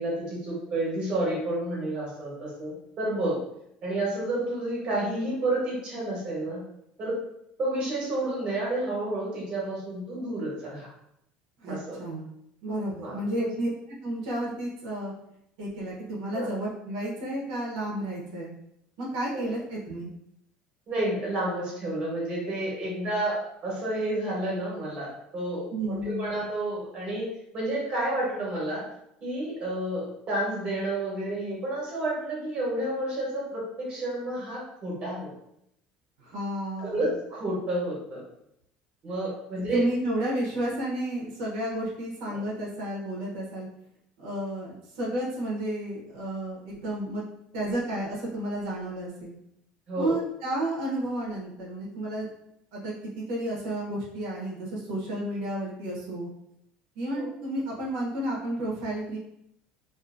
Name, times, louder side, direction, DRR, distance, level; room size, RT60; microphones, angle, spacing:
voice 1, 0.0-3.4 3.8-6.6 7.0-7.2 7.6-10.9 11.7-12.0 13.0-13.5 16.3-16.5 19.3-19.5 20.9-27.3 27.5-28.8 29.2-35.3 36.8-38.2 39.0-39.8 42.2-42.4 49.9-50.2 57.1-57.3, right 1 dB, 30° right, -5 dB, 1.0 m, -30 dB
voice 2, 11.6-12.3 12.6-13.7 14.0-15.1 15.6-18.5 19.0-20.1 25.7-26.3 36.2-37.0 39.7-43.7 44.2-47.2 47.5-49.4 50.0-52.3 52.7-56.3 57.0-59.2, right 1 dB, 85° right, -4 dB, 0.8 m, -32 dB
2.5 x 2.5 x 2.5 m, 0.76 s
cardioid pair, 165°, 3 cm